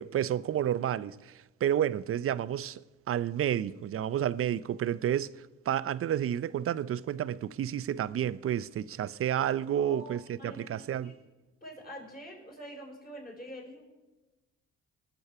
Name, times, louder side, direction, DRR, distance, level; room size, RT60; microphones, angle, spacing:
voice 1, 0.0-2.8 3.1-11.1, right 10 dB, 50° right, 0.5 m, -30 dB
voice 2, 9.7-10.7 11.0-11.1 11.6-13.8, equal, 30° left, 5.0 m, -45 dB
19.0 x 7.0 x 5.9 m
cardioid pair, 90°, 30 cm